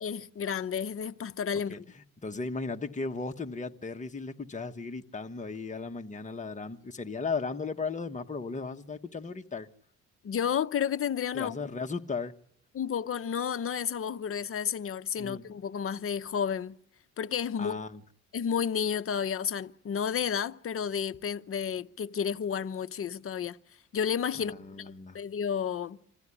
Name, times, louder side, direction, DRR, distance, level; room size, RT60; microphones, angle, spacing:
voice 1, 0.0-1.8 10.2-11.6 12.7-16.8 17.2-17.8 18.3-23.6 23.9-26.0, left 7 dB, 45° left, 0.8 m, -31 dB
voice 2, 1.5-9.7 11.3-12.3 15.2-15.5 17.6-18.0 24.4-25.2, left 4 dB, 25° left, 1.4 m, -36 dB
26.0 x 15.5 x 9.9 m
cardioid pair, 90°, 30 cm